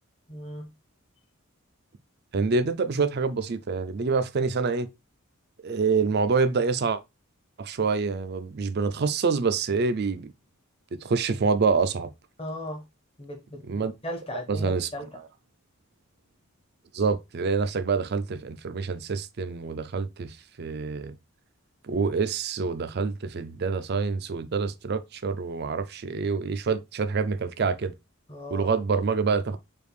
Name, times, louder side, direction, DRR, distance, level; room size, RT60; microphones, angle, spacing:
voice 1, 0.3-0.7 12.4-12.8 13.2-15.1 28.3-28.7, equal, 25° left, 1.0 m, -37 dB
voice 2, 2.3-4.9 5.6-7.0 7.6-10.3 11.0-12.1 13.7-13.9 14.6-14.9 16.9-21.1 21.8-27.9 28.5-29.6, right 4 dB, 50° right, 0.4 m, -26 dB
5.0 x 2.5 x 3.2 m
head